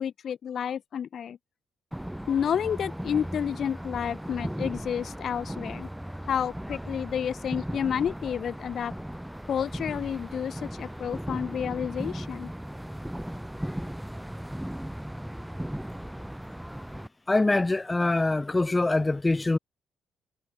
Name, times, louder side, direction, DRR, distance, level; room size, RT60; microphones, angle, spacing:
voice 1, 0.0-1.4 2.3-5.9 6.3-8.9 9.5-12.5, left 8 dB, 60° left, 3.2 m, -30 dB
sound 1, 1.9-17.1, equal, 5° right, 1.3 m, -37 dB
voice 2, 17.3-19.6, left 2 dB, 15° left, 1.7 m, -24 dB
cardioid pair, 90°, 0 cm